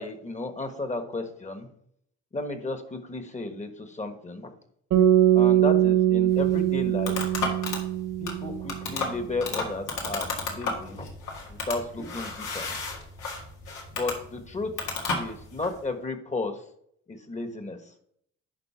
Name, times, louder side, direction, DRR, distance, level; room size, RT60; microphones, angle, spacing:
voice 1, 0.0-1.7 2.3-4.5 5.3-7.1 8.2-11.1 11.5-12.7 14.0-14.8 15.1-16.6 17.1-17.8, left 2 dB, 25° left, 7 dB, 1.3 m, -33 dB
sound 1, 4.9-9.1, right 12 dB, 80° right, 1.8 m, -22 dB
sound 2, 6.3-15.8, left 3 dB, 85° left, 2.0 m, -33 dB
11.0 x 3.9 x 5.6 m, 0.70 s
cardioid pair, 90°, 30 cm